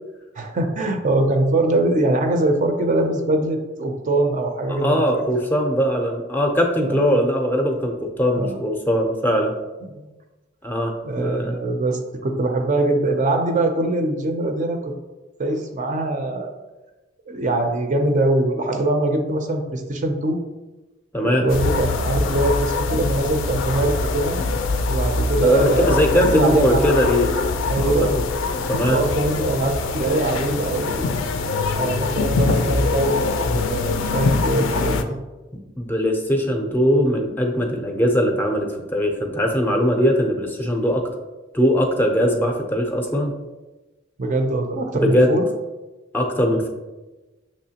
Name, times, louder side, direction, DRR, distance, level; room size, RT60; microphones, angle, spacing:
voice 1, 0.4-5.2 6.8-7.2 8.3-8.6 9.9-10.1 11.0-14.9 15.4-16.5 17.3-20.4 21.2-24.4 24.9-26.9 27.7-28.2 28.9-31.1 31.7-33.2 33.5-35.2 44.2-45.5, right 2 dB, 40° right, 5 dB, 0.5 m, -22 dB
voice 2, 4.7-9.5 10.6-11.5 21.1-21.5 25.4-27.3 27.8-27.9 28.7-29.0 35.8-41.1 41.5-43.3 44.9-45.4 46.1-46.7, equal, 10° left, 2 dB, 0.5 m, -20 dB
sound 1, 21.5-35.0, left 3 dB, 70° left, 0.4 m, -23 dB
6.3 x 3.0 x 2.8 m, 1.1 s
head